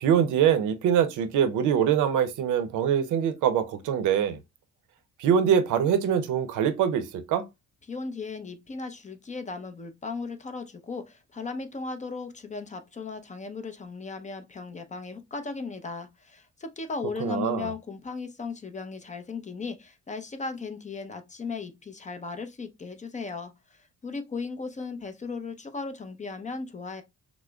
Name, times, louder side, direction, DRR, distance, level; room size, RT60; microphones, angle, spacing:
voice 1, 0.0-4.4 5.2-7.4 17.2-17.7, right 8 dB, 80° right, 0.6 m, -24 dB
voice 2, 7.9-27.0, left 4 dB, 25° left, 0.6 m, -36 dB
5.9 x 2.0 x 2.3 m
cardioid pair, 90°, 30 cm